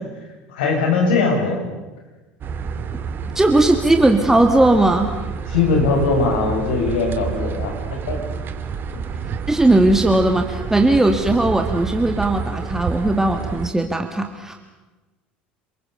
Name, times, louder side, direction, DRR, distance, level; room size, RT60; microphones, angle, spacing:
voice 1, 0.5-1.6 5.5-7.7 8.1-8.2, left 4 dB, 75° left, 1 dB, 7.3 m, -20 dB
sound 1, 2.4-13.7, right 6 dB, 40° right, 2.5 m, -29 dB
voice 2, 3.3-5.1 9.5-14.6, right 2 dB, 10° right, 5 dB, 2.2 m, -17 dB
28.5 x 22.0 x 6.9 m, 1.2 s
hypercardioid pair, 70°, 5 cm